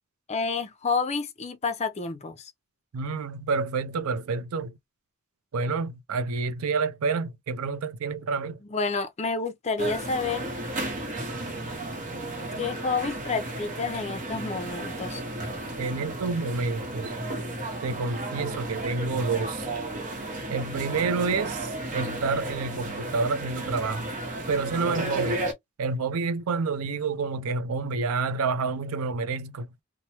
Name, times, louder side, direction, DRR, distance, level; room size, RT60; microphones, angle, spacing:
voice 1, 0.3-2.5 8.7-10.5 12.6-15.2, left 4 dB, 30° left, 0.5 m, -29 dB
voice 2, 2.9-4.8 5.5-8.6 15.8-17.1 17.8-19.7 20.5-24.1 24.5-25.5 25.8-29.7, right 4 dB, 85° right, 0.4 m, -28 dB
sound 1, 9.8-25.5, right 1 dB, 40° right, 1.0 m, -33 dB
3.0 x 2.1 x 2.8 m
head